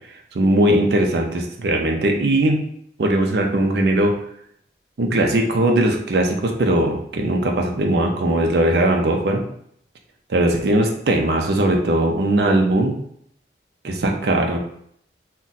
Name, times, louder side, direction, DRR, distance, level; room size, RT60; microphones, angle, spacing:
voice 1, 0.3-2.6 3.0-4.2 5.0-9.4 10.3-13.0 13.8-14.6, right 1 dB, 70° right, 2 dB, 0.5 m, -19 dB
2.6 x 2.2 x 3.9 m, 0.68 s
head